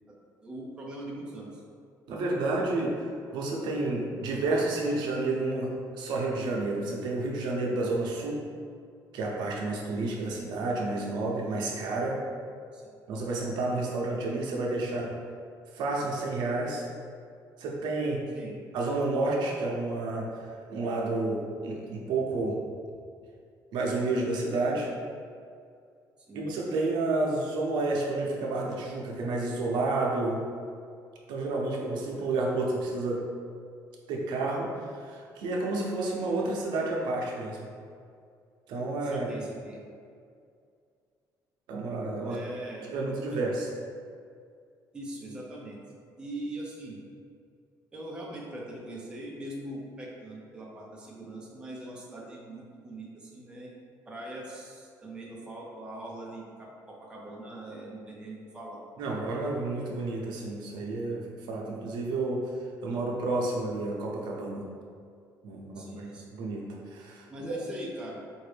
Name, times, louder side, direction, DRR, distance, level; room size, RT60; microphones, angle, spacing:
voice 1, 0.4-1.6 12.7-12.9 18.3-18.5 26.3-26.5 39.0-39.8 42.3-42.9 44.9-45.8 46.2-47.0 47.9-53.7 54.1-58.8 65.8-66.4 67.3-68.2, right 1 dB, 10° right, -4 dB, 0.5 m, -41 dB
voice 2, 2.1-2.9 3.3-8.4 9.1-12.2 13.1-15.1 15.7-16.8 17.6-18.2 18.7-22.6 23.7-24.9 26.3-30.4 31.3-33.2 34.1-37.7 38.7-39.3 41.7-42.4 42.9-43.7 59.0-62.4 62.8-64.6 65.4-66.0 66.3-67.5, right 2 dB, 80° right, -2 dB, 0.7 m, -30 dB
4.8 x 2.6 x 3.3 m, 2.3 s
cardioid pair, 175°, 7 cm